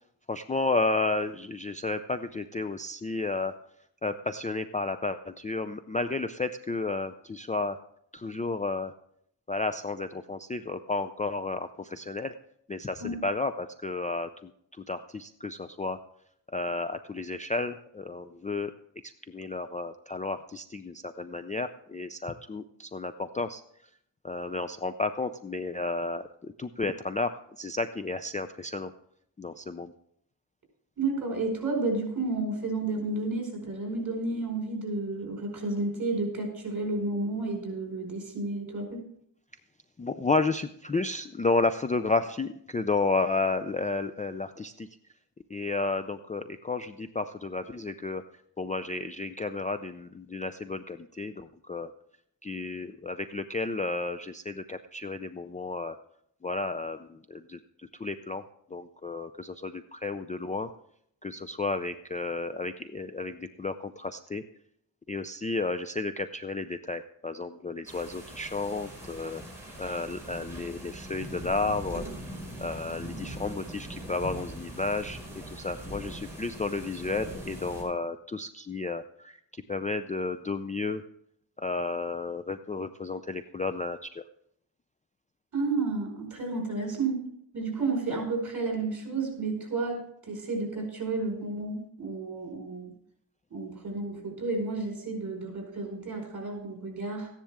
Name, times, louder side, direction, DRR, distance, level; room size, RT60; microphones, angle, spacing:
voice 1, 0.3-3.5 4.0-7.8 8.1-8.9 9.5-12.3 12.7-16.0 16.5-18.7 19.3-23.6 24.2-28.9 29.4-29.9 40.0-44.9 45.5-48.2 48.6-51.9 52.4-56.0 56.4-58.4 58.7-60.7 61.2-64.4 65.1-69.4 69.8-72.0 72.6-75.2 75.5-81.0 81.6-84.2, left 3 dB, 20° left, 9 dB, 0.4 m, -32 dB
voice 2, 31.0-39.0 85.5-87.2 87.5-92.9 93.5-97.3, right 3 dB, 45° right, 1 dB, 4.9 m, -31 dB
sound 1, 67.8-77.8, right 1 dB, 5° right, 5.4 m, -41 dB
14.5 x 10.5 x 3.5 m, 0.68 s
wide cardioid pair, 115°, 42 cm